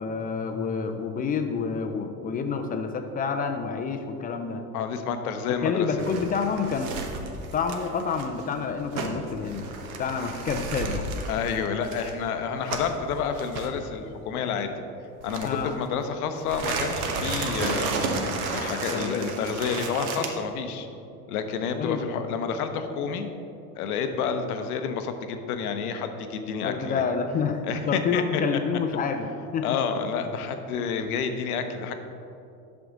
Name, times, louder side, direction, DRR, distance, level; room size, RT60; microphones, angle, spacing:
voice 1, 0.0-4.6 5.5-6.9 7.5-9.7 10.0-11.0 15.4-15.8 18.9-19.3 21.7-22.0 26.6-29.8, left 5 dB, 20° left, 6 dB, 0.3 m, -28 dB
voice 2, 4.7-5.9 11.3-14.7 15.2-20.9 21.3-23.3 23.8-27.0 27.7-28.4 29.6-31.9, left 6 dB, 70° left, 8 dB, 0.8 m, -29 dB
sound 1, 6.0-13.0 13.4-13.7 15.2-15.9 16.4-20.3, right 3 dB, 65° right, 1.1 m, -32 dB
8.0 x 6.0 x 3.8 m, 2.7 s
hypercardioid pair, 80°, 45 cm